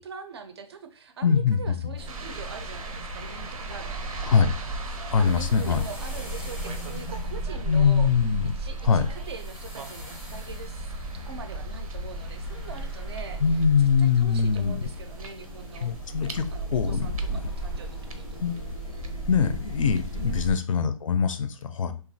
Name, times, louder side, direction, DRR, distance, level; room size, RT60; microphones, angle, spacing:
voice 1, 0.0-4.3 5.2-8.1 8.6-13.6 14.0-18.4 20.1-20.5, right 5 dB, 50° right, 7 dB, 0.4 m, -43 dB
voice 2, 1.2-1.9 4.3-4.5 5.1-5.8 7.6-8.5 8.8-9.1 13.4-14.8 15.8-16.4 16.7-17.4 18.4-18.6 19.3-21.9, left 6 dB, 70° left, 10 dB, 0.4 m, -23 dB
sound 1, 2.0-20.5, right 1 dB, ahead, 0.6 m, -35 dB
sound 2, 2.1-20.6, right 4 dB, 85° right, 0.6 m, -45 dB
3.0 x 2.3 x 2.6 m, 0.37 s
hypercardioid pair, 170°, 18 cm